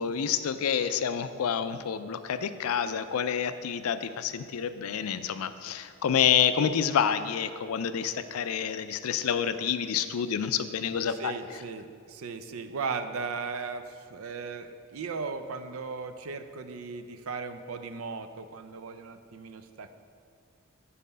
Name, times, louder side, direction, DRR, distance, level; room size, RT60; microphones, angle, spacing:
voice 1, 0.0-11.3, left 8 dB, 90° left, 11 dB, 0.4 m, -28 dB
voice 2, 11.1-19.9, right 4 dB, 80° right, 9 dB, 0.5 m, -37 dB
7.4 x 4.2 x 6.7 m, 2.2 s
head